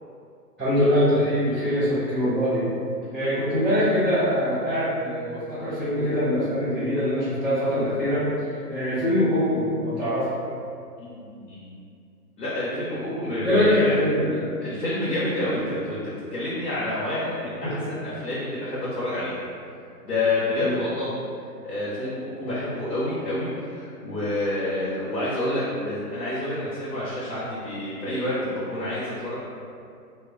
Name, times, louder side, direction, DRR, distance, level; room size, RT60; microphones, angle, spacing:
voice 1, 0.6-2.6 3.1-10.3 13.4-14.4 17.6-17.9 20.6-20.7 22.4-22.5, equal, ahead, -21 dB, 0.3 m, -23 dB
voice 2, 11.0-11.7 12.4-14.0 14.6-19.4 20.0-21.1 21.6-29.4, left 1 dB, 75° left, -10 dB, 0.9 m, -28 dB
2.2 x 2.1 x 3.4 m, 2.5 s
figure-of-eight pair, 140°, 49 cm